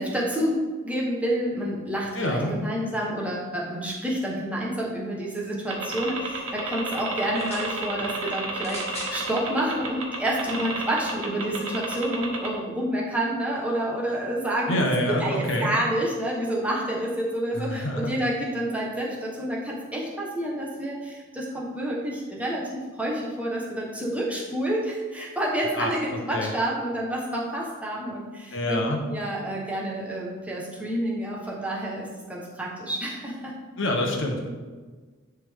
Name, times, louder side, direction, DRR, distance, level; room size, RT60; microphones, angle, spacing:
voice 1, 0.0-28.8 29.1-33.5, right 1 dB, 5° right, -4 dB, 1.1 m, -29 dB
voice 2, 2.1-2.5 14.7-15.7 17.5-18.1 25.8-26.5 28.5-29.0 33.8-34.5, left 1 dB, 60° left, 1 dB, 1.0 m, -27 dB
sound 1, 5.7-12.5, right 3 dB, 70° right, 1.2 m, -31 dB
sound 2, 7.3-7.7 8.6-9.2 10.1-10.2, left 2 dB, 30° left, 1.2 m, -39 dB
10.5 x 3.6 x 3.6 m, 1.4 s
head